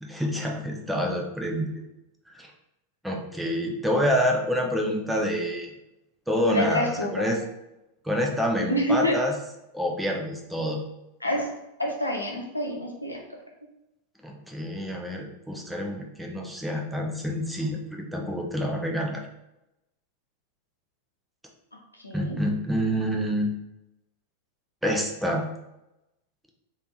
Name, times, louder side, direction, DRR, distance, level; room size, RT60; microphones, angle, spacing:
voice 1, 0.0-1.8 2.3-2.5 3.0-5.7 6.3-7.4 8.0-9.3 9.7-10.8 14.2-19.3 22.1-23.5 24.8-25.5, equal, 5° right, 0 dB, 0.6 m, -27 dB
voice 2, 6.5-7.3 8.6-9.1 11.2-11.5 11.8-13.2 22.0-22.4, left 1 dB, 85° left, 0 dB, 0.7 m, -27 dB
3.3 x 2.6 x 3.0 m, 0.90 s
figure-of-eight pair, 90°, 0 cm